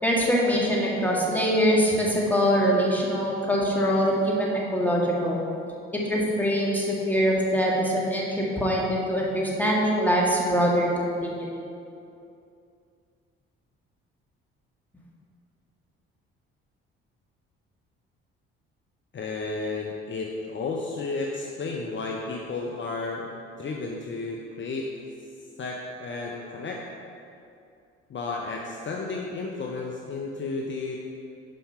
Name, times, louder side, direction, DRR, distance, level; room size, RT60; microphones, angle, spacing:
voice 1, 0.0-5.4 5.9-11.7, equal, 5° left, -4 dB, 1.8 m, -23 dB
voice 2, 19.1-24.9 25.6-26.9 28.1-31.0, left 3 dB, 40° left, 0 dB, 0.8 m, -32 dB
5.7 x 5.3 x 5.6 m, 2.5 s
hypercardioid pair, 55°, 29 cm